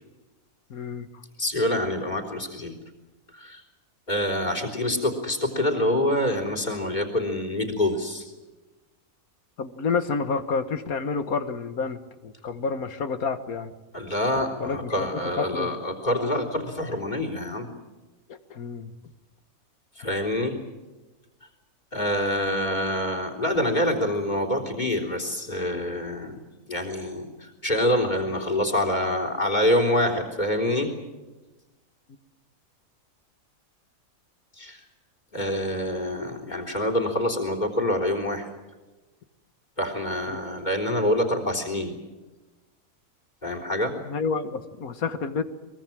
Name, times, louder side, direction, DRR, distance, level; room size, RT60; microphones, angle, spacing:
voice 1, 0.7-1.1 9.6-13.7 14.6-15.7 18.3-18.9 40.3-40.4 44.1-45.4, left 5 dB, 85° left, 10 dB, 1.9 m, -29 dB
voice 2, 1.4-2.7 3.3-3.6 4.1-8.2 13.9-17.7 20.0-20.6 21.9-26.4 26.7-30.9 34.6-34.8 35.3-38.5 39.8-42.0 43.4-43.9, left 1 dB, 30° left, 7 dB, 3.9 m, -26 dB
23.5 x 22.5 x 7.5 m, 1.1 s
omnidirectional pair, 1.5 m